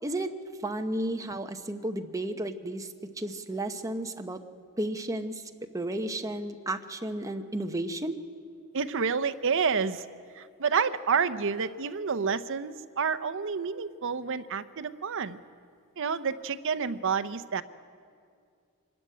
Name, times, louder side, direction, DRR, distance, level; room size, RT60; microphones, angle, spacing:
voice 1, 0.0-0.3 0.6-2.9 3.2-4.4 4.8-5.4 5.7-8.2, right 1 dB, 15° right, 6 dB, 0.9 m, -33 dB
voice 2, 8.7-10.1 10.4-15.4 16.0-17.6, right 6 dB, 60° right, 12 dB, 0.7 m, -29 dB
24.5 x 13.0 x 9.5 m, 2.3 s
head